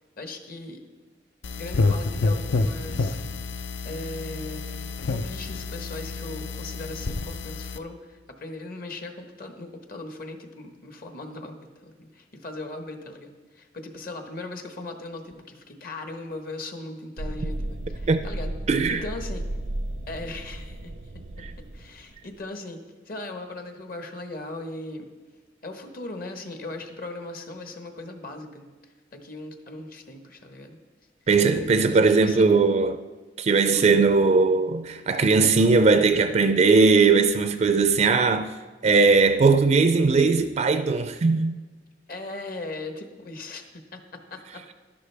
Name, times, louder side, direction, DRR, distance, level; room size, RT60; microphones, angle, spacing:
voice 1, 0.2-0.8 1.6-3.2 3.8-18.5 18.9-19.4 20.1-20.9 21.7-25.1 25.6-30.8 31.5-32.5 33.7-33.9 42.1-44.7, left 2 dB, 55° left, 1.1 m, -38 dB
sound 1, 1.4-7.8, left 3 dB, 80° left, 0.5 m, -28 dB
sound 2, 17.2-22.3, right 1 dB, 85° right, 0.7 m, -34 dB
voice 2, 18.7-19.0 31.3-33.0 33.4-38.5 38.8-41.6, right 4 dB, 35° right, 0.4 m, -19 dB
11.5 x 11.5 x 3.4 m
head